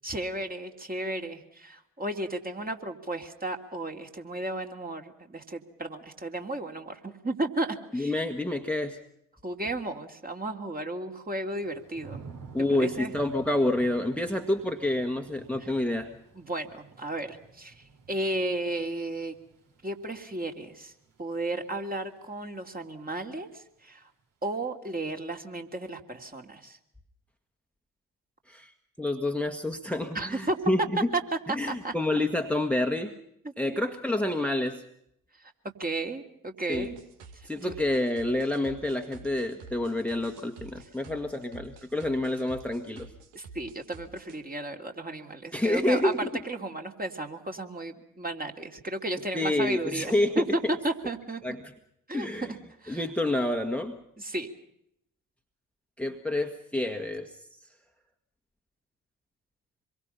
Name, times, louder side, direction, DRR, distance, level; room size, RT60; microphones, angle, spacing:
voice 1, 0.0-8.1 9.4-12.2 12.7-13.1 16.3-19.3 19.8-20.9 21.2-24.0 24.4-26.8 30.1-30.6 31.1-31.9 33.4-33.8 35.4-35.5 35.8-37.0 37.6-37.7 43.3-46.1 46.4-51.4 52.1-52.6 52.8-53.0 54.2-54.5, right 2 dB, 20° right, 3 dB, 3.1 m, -34 dB
voice 2, 7.9-9.0 12.5-16.1 28.5-31.1 31.6-33.1 33.6-34.8 36.7-36.9 37.5-43.1 45.5-46.3 49.3-50.6 51.4-51.7 52.1-52.5 52.9-54.0 56.0-57.5, left 1 dB, 5° left, 5 dB, 1.9 m, -28 dB
Thunder / Rain, 11.5-22.4 22.8-23.3, right 5 dB, 50° right, 3.3 m, -51 dB
sound 1, 36.7-44.4, right 4 dB, 70° right, 2.4 m, -49 dB
26.5 x 23.0 x 5.7 m, 0.75 s
figure-of-eight pair, 45°, 43 cm